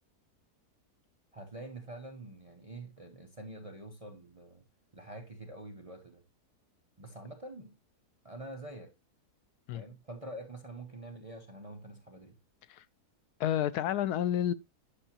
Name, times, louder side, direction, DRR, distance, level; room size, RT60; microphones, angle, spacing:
voice 1, 1.3-4.6 4.9-6.2 7.0-7.8 8.2-8.9 9.7-12.4, right 1 dB, 30° right, 0.7 m, -46 dB
voice 2, 13.4-14.5, left 11 dB, 80° left, 1.1 m, -30 dB
10.0 x 6.1 x 2.8 m
omnidirectional pair, 1.7 m